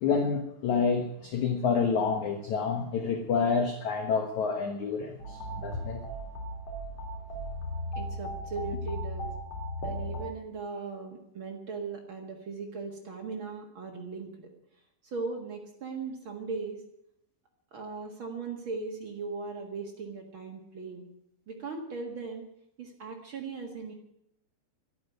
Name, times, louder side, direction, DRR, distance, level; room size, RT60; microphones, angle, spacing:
voice 1, 0.0-6.0, left 5 dB, 70° left, 4 dB, 1.8 m, -28 dB
sound 1, 5.2-10.3, equal, 35° left, 3.6 m, -36 dB
voice 2, 7.9-9.3 9.8-14.5 15.0-16.8 17.7-21.1 21.5-22.5 22.8-23.9, right 4 dB, 90° right, 2 dB, 1.1 m, -38 dB
12.5 x 12.0 x 9.4 m, 0.79 s
omnidirectional pair, 5.4 m